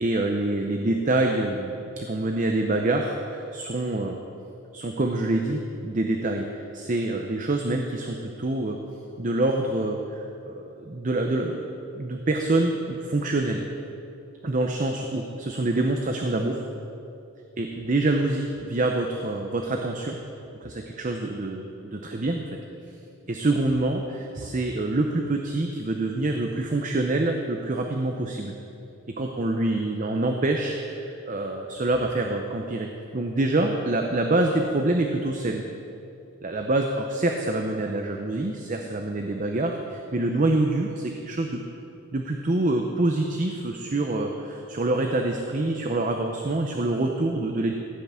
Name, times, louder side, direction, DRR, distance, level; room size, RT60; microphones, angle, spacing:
voice 1, 0.0-4.2 4.7-8.8 9.2-11.7 11.9-13.6 14.4-16.6 17.6-20.2 20.6-22.5 23.3-28.5 29.2-35.6 36.4-41.6 42.1-47.7, right 2 dB, 35° right, 3 dB, 0.7 m, -26 dB
14.5 x 5.8 x 8.2 m, 2.8 s
head